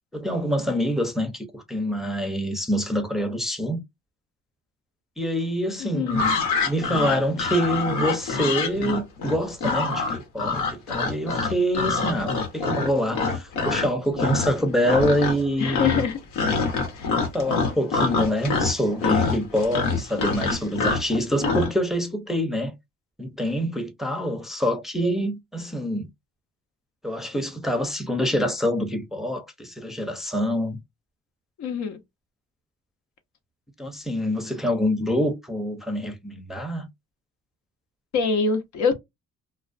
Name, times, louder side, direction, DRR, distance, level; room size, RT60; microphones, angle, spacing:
voice 1, 0.1-3.8 5.2-6.3 6.6-15.9 17.3-22.7 23.2-26.1 27.0-30.8 33.8-36.9, equal, ahead, 0.6 m, -26 dB
voice 2, 5.8-6.2 15.6-16.2 16.9-17.2 31.6-32.0 38.1-38.9, left 5 dB, 70° left, 0.7 m, -25 dB
sound 1, 6.1-13.9 14.2-14.6 14.9-15.5 15.7-21.7, left 4 dB, 85° left, 1.0 m, -25 dB
2.4 x 2.2 x 2.4 m
cardioid pair, 90°, 30 cm